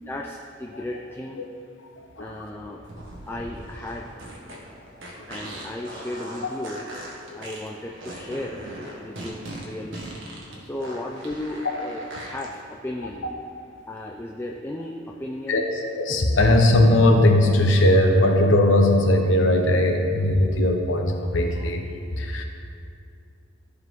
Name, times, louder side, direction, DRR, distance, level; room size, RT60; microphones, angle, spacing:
voice 1, 0.1-1.4 2.2-2.8 3.3-4.1 4.4-4.6 5.3-6.8 7.3-8.7 9.0-10.0 10.6-13.3 13.9-15.6, left 1 dB, 10° left, 0 dB, 0.4 m, -35 dB
voice 2, 2.0-2.5 4.5-4.6 5.1-5.2 6.4-6.5 7.3-7.5 10.0-10.1 10.5-10.6 15.5-21.9 22.1-22.4, left 1 dB, 75° left, 3 dB, 1.0 m, -19 dB
sound 1, 2.8-12.5, right 1 dB, 80° right, 1.6 m, -39 dB
14.5 x 4.9 x 3.7 m, 2.4 s
head